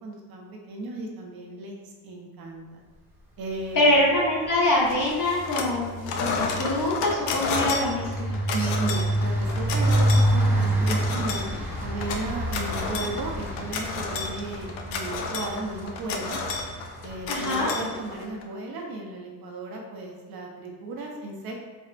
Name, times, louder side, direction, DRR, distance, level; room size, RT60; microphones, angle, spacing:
voice 1, 0.0-1.8 2.0-2.8 3.4-3.8 8.5-11.4 11.8-16.4 17.0-21.6, right 2 dB, 50° right, 0 dB, 0.7 m, -35 dB
voice 2, 3.7-8.3 17.3-17.7, left 1 dB, 45° left, -4 dB, 1.2 m, -24 dB
sound 1, 3.9-4.3 4.5-17.7, right 1 dB, 5° right, 1.0 m, -28 dB
sound 2, 4.9-5.8 6.0-18.4, left 4 dB, 75° left, 0.6 m, -32 dB
4.4 x 2.1 x 2.5 m, 1.4 s
supercardioid pair, 70°, 47 cm